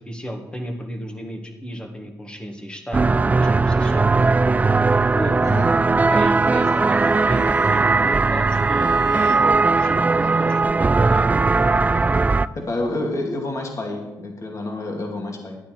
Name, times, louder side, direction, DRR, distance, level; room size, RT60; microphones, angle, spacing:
voice 1, 0.0-4.1 5.1-5.5 6.1-11.4, equal, 15° left, 4 dB, 1.8 m, -33 dB
sound 1, 2.9-12.5, right 3 dB, 20° right, 0.3 m, -18 dB
voice 2, 5.4-5.7 12.5-15.6, left 2 dB, 45° left, 1 dB, 2.4 m, -28 dB
Bowed string instrument, 5.8-9.5, right 9 dB, 65° right, 1.1 m, -42 dB
12.0 x 9.2 x 4.5 m, 1.0 s
cardioid pair, 85°, 7 cm